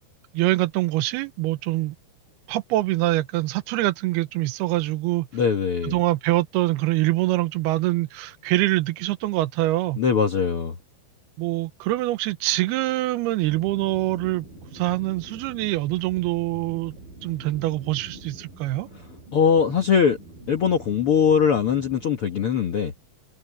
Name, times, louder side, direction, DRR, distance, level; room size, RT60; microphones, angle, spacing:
voice 1, 0.3-2.0 2.5-5.3 5.8-10.0 11.4-14.5 14.7-16.9 17.2-18.9, right 17 dB, 90° right, 2.8 m, -24 dB
voice 2, 5.3-5.9 10.0-10.7 19.3-20.2 20.5-22.9, left 7 dB, 70° left, 1.3 m, -21 dB
sound 1, 13.4-22.1, right 2 dB, 60° right, 6.2 m, -45 dB
omnidirectional pair, 4.5 m